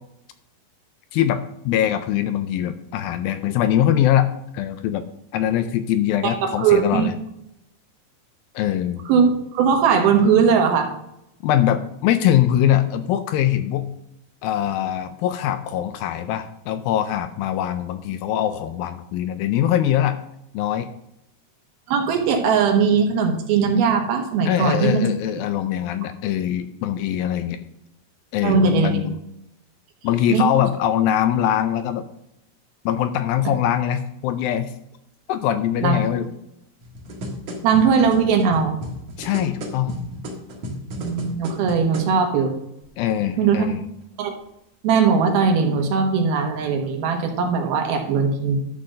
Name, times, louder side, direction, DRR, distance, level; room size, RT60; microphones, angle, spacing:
voice 1, 1.1-5.0 5.3-7.1 8.6-9.0 11.4-13.9 14.4-20.2 20.5-20.9 24.5-27.7 28.3-29.2 30.0-32.0 32.9-34.7 35.3-36.3 39.2-40.0 43.0-43.9, left 11 dB, 80° left, 10 dB, 2.2 m, -22 dB
voice 2, 6.2-7.1 9.1-9.3 9.5-10.9 21.9-25.1 28.4-29.0 30.3-30.5 35.8-36.0 37.6-38.8 41.0-42.5 43.4-43.7 44.2-44.3 44.8-48.6, right 6 dB, 75° right, 3 dB, 3.2 m, -19 dB
sound 1, 36.8-42.1 42.8-42.9, equal, 50° right, 2.3 m, -34 dB
11.5 x 4.2 x 6.3 m, 0.81 s
omnidirectional pair, 4.4 m